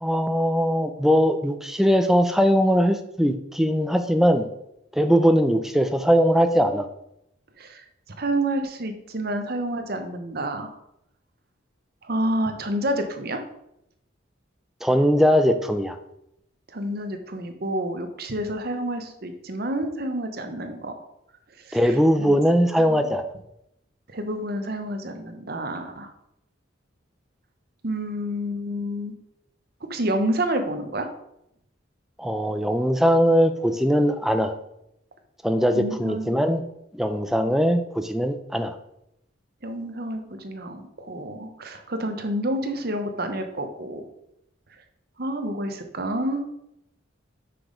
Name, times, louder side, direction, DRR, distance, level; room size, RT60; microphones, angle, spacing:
voice 1, 0.0-4.5 4.9-6.9 14.8-16.0 21.7-23.2 32.2-34.5 35.4-36.6 36.9-38.8, equal, ahead, 7 dB, 0.4 m, -20 dB
voice 2, 8.2-10.7 12.0-13.4 16.7-20.9 21.6-21.8 22.2-22.3 22.8-23.1 24.1-26.1 27.8-29.1 29.8-31.1 35.7-36.3 39.6-44.0 45.2-46.4, right 1 dB, 50° right, 6 dB, 0.9 m, -29 dB
6.0 x 5.1 x 5.1 m, 0.81 s
head